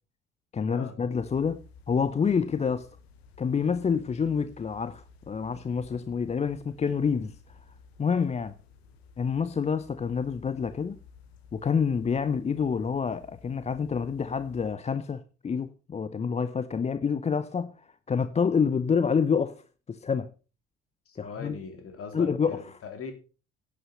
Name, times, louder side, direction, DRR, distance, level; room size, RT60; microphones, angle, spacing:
voice 1, 0.5-2.9 3.4-7.3 8.0-8.5 9.2-11.0 11.5-17.7 18.1-19.6 19.9-20.3 21.2-21.5 22.1-22.6, left 6 dB, 20° left, 0.6 m, -27 dB
sound 1, 1.1-14.7, left 5 dB, 70° left, 1.5 m, -54 dB
voice 2, 21.1-23.1, left 5 dB, 45° left, 3.2 m, -40 dB
11.0 x 8.5 x 5.4 m
figure-of-eight pair, 55°, 32 cm